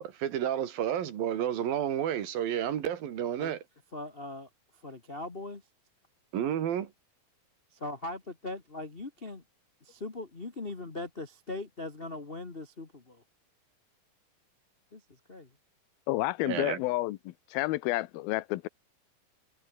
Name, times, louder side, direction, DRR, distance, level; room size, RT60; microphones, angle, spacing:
voice 1, 0.0-3.6 6.3-6.9 16.5-16.8, right 10 dB, 75° right, 3.8 m, -31 dB
voice 2, 3.9-4.5 4.8-5.6 7.7-9.4 9.8-13.2 14.9-15.5, left 2 dB, 45° left, 0.7 m, -40 dB
voice 3, 16.1-18.7, left 18 dB, 85° left, 2.7 m, -30 dB
omnidirectional pair, 4.2 m